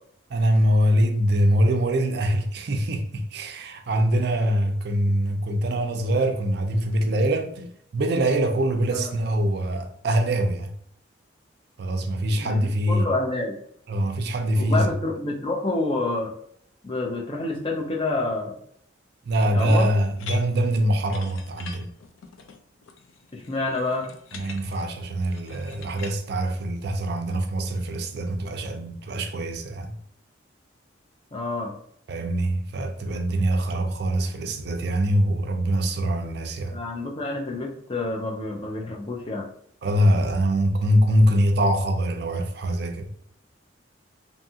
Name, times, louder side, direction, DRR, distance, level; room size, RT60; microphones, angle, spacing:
voice 1, 0.3-10.7 11.8-13.1 13.9-14.9 19.3-21.9 24.3-30.0 32.1-36.8 39.8-43.1, right 1 dB, 55° right, 0.4 m, -23 dB
voice 2, 12.3-13.6 14.6-16.3 16.8-18.6 19.5-19.9 23.3-24.1 31.3-31.7 36.7-39.5, left 2 dB, 25° left, 0.5 m, -28 dB
sound 1, 20.2-26.2, left 5 dB, 90° left, 0.4 m, -43 dB
2.7 x 2.3 x 2.7 m
head